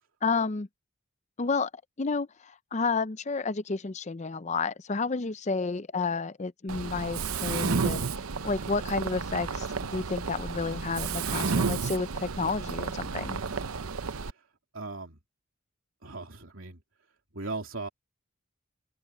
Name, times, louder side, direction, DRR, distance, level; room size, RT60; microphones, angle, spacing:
voice 1, 0.2-0.7 1.4-1.7 2.0-8.1 8.4-13.4, left 4 dB, 30° left, 0.5 m, -31 dB
Mechanisms, 6.7-14.3, right 5 dB, 80° right, 0.8 m, -32 dB
voice 2, 14.7-15.2 16.0-16.8 17.3-17.9, right 3 dB, 65° right, 3.2 m, -38 dB
open air
head